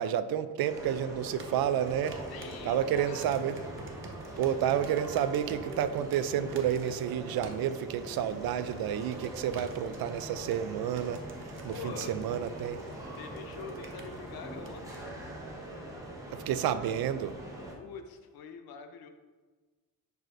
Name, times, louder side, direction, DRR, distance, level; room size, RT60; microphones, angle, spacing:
voice 1, 0.0-2.2 2.6-3.6 4.4-12.8 16.3-17.4, right 9 dB, 85° right, 12 dB, 0.5 m, -30 dB
sound 1, 0.7-17.7, right 1 dB, 10° right, 0.9 m, -43 dB
sound 2, 1.3-15.1, right 3 dB, 35° right, 0.8 m, -51 dB
voice 2, 2.0-3.3 11.7-12.2 13.2-15.2 17.7-19.1, left 5 dB, 80° left, 7 dB, 0.8 m, -45 dB
10.5 x 4.9 x 2.6 m, 1.3 s
cardioid pair, 165°, 36 cm